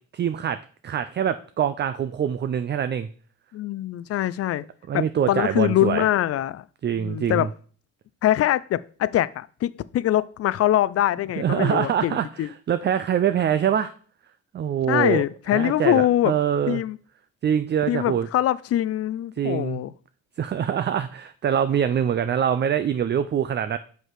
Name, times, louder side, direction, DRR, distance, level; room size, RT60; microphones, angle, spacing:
voice 1, 0.1-0.6 0.8-3.1 4.9-6.1 6.8-7.5 11.4-13.9 14.5-15.2 15.5-16.8 17.4-18.3 19.4-19.8 20.4-23.8, right 9 dB, 35° right, 11 dB, 0.4 m, -24 dB
voice 2, 3.5-4.6 4.9-6.6 6.9-7.5 8.2-12.5 14.9-16.3 16.7-17.0 17.9-19.9, left 13 dB, 50° left, 18 dB, 0.4 m, -23 dB
5.8 x 5.4 x 4.7 m, 0.44 s
cardioid pair, 90°, 30 cm